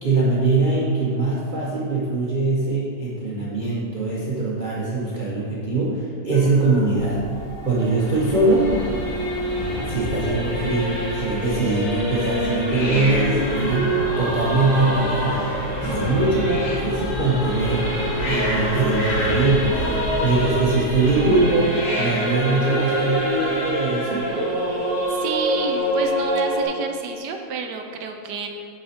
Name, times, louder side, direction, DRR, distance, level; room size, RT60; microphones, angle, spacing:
voice 1, 0.0-7.2 7.6-8.7 9.9-17.9 18.2-19.9 20.2-24.3, right 3 dB, 40° right, -7 dB, 0.7 m, -22 dB
Hiss, 6.3-23.7, left 1 dB, 75° left, 2.1 m, -35 dB
Singing / Musical instrument, 7.3-26.7, equal, 60° left, 2.4 m, -26 dB
sound 1, 8.0-21.5, left 1 dB, 40° left, 0.4 m, -31 dB
voice 2, 25.1-28.5, right 5 dB, 75° right, 4 dB, 1.2 m, -30 dB
8.6 x 4.0 x 4.2 m, 2.2 s
omnidirectional pair, 1.9 m